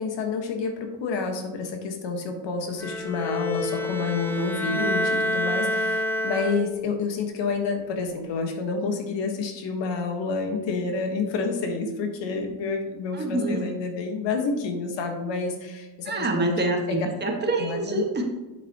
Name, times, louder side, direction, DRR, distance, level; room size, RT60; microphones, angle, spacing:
voice 1, 0.0-17.0 17.6-18.0, left 4 dB, 60° left, 4 dB, 1.6 m, -29 dB
Bowed string instrument, 2.8-6.9, left 1 dB, 5° left, 0.8 m, -28 dB
voice 2, 13.1-13.6 16.0-18.2, right 2 dB, 20° right, 1 dB, 1.6 m, -26 dB
8.1 x 7.0 x 3.0 m, 1.1 s
supercardioid pair, 100°, 50 cm